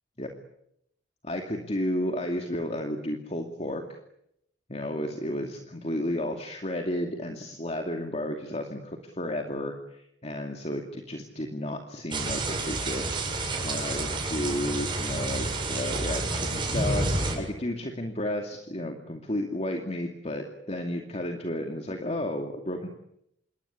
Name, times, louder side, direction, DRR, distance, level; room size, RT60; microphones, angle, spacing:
voice 1, 1.2-3.8 4.7-13.1 13.6-22.9, left 1 dB, 35° left, 4 dB, 2.5 m, -32 dB
sound 1, 12.1-17.4, right 2 dB, 25° right, 7.4 m, -29 dB
27.0 x 23.5 x 8.5 m, 0.77 s
head